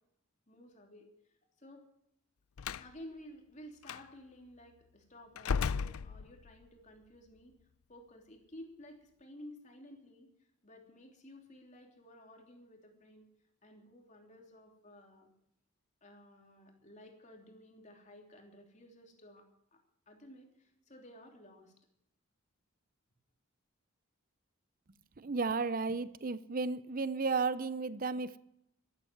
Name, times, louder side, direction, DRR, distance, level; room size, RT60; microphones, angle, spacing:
voice 1, 0.5-1.1 1.6-1.8 2.7-7.6 7.9-10.3 10.6-13.3 13.6-15.3 16.0-19.8 20.1-21.7, left 1 dB, 35° left, 3.1 m, -54 dB
Slam, 2.6-2.9 3.8-4.0 5.4-6.6, left 6 dB, 85° left, 0.5 m, -35 dB
voice 2, 25.2-28.4, right 4 dB, 40° right, 0.6 m, -33 dB
13.0 x 13.0 x 7.9 m
head